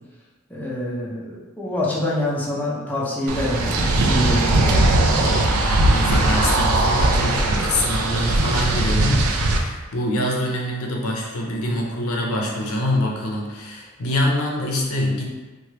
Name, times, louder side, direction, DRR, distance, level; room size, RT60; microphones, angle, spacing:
voice 1, 0.5-5.0, left 1 dB, 10° left, -6 dB, 0.4 m, -26 dB
sound 1, 3.3-9.6, right 2 dB, 80° right, 0.4 m, -19 dB
voice 2, 5.2-15.2, left 1 dB, 80° left, -1 dB, 0.6 m, -25 dB
3.0 x 2.2 x 2.9 m, 1.3 s
head